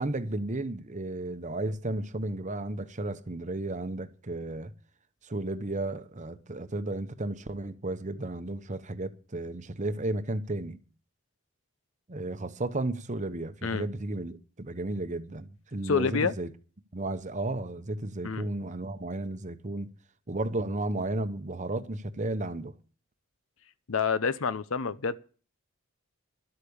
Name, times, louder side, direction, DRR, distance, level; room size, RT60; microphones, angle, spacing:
voice 1, 0.0-4.7 5.2-10.8 12.1-16.5 16.9-19.9 20.3-22.7, right 2 dB, 35° right, 0.9 m, -33 dB
voice 2, 15.8-16.3 18.2-18.5 23.9-25.2, left 5 dB, 65° left, 0.7 m, -28 dB
12.0 x 8.3 x 7.0 m
head